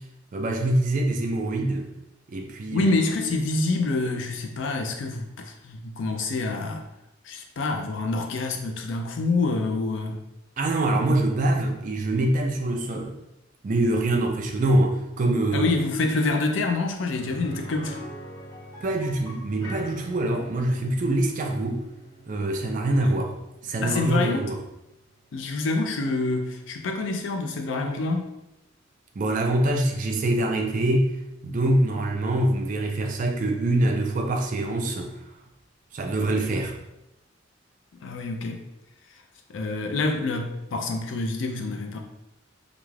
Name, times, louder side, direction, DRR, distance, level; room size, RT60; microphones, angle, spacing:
voice 1, 0.3-1.9 2.3-2.9 10.6-13.1 13.6-15.7 18.8-21.8 22.3-23.3 23.6-24.6 29.2-31.1 31.4-35.2 35.9-36.8, right 1 dB, 40° right, 3 dB, 0.4 m, -24 dB
voice 2, 2.7-6.8 7.2-10.2 15.5-18.0 23.8-24.5 25.3-28.4 38.0-38.6 39.5-42.0, left 3 dB, 70° left, 4 dB, 0.4 m, -27 dB
sound 1, 17.1-26.9 27.2-27.3 29.8-29.9, equal, 20° left, 0.8 m, -44 dB
2.4 x 2.3 x 3.2 m, 0.90 s
head